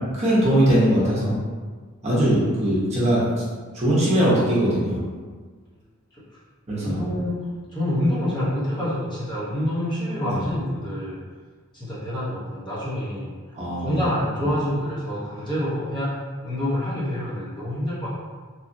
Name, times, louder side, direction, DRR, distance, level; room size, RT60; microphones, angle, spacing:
voice 1, 0.1-1.3 2.0-3.2 3.7-5.0 6.7-7.0 10.3-10.4 13.5-14.0, right 1 dB, 30° right, -8 dB, 0.7 m, -20 dB
voice 2, 6.7-11.2 11.7-13.3 13.8-18.1, left 1 dB, 20° left, -9 dB, 0.7 m, -27 dB
2.9 x 2.3 x 2.5 m, 1.5 s
head